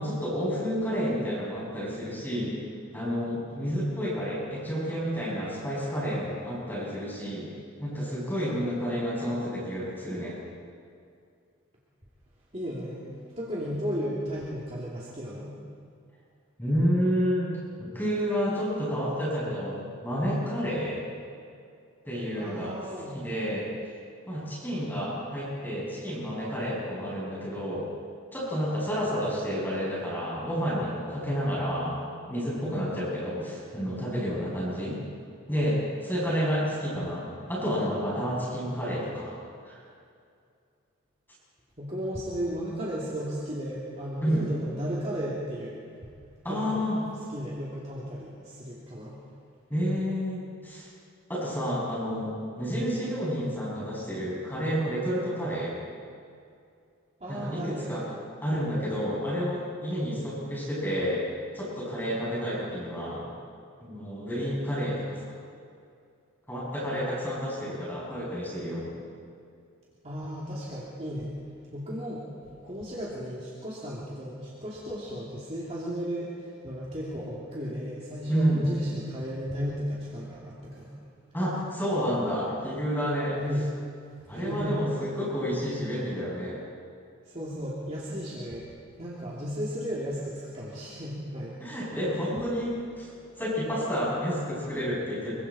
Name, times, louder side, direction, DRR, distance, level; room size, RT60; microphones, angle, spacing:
voice 1, 0.0-2.6 2.9-7.5 7.8-10.3 16.6-17.5 17.8-21.0 22.1-22.7 23.1-23.7 24.3-27.8 28.3-31.9 32.3-35.0 35.5-39.3 39.6-39.8 44.2-44.5 46.4-47.0 49.7-50.9 51.3-55.7 57.3-58.0 58.4-61.2 61.5-63.3 63.8-65.2 66.5-68.9 78.3-78.6 81.3-83.4 84.3-86.6 91.6-93.1 93.4-95.3, equal, 10° left, -7 dB, 7.4 m, -30 dB
voice 2, 12.5-15.6 22.3-23.2 41.8-45.9 46.5-46.9 47.3-49.2 57.2-58.0 70.0-71.4 71.7-81.0 83.3-83.8 84.2-84.9 87.3-88.7 89.0-91.7 93.1-93.4, equal, 30° right, -6 dB, 2.9 m, -34 dB
26.0 x 23.5 x 4.3 m, 2.4 s
head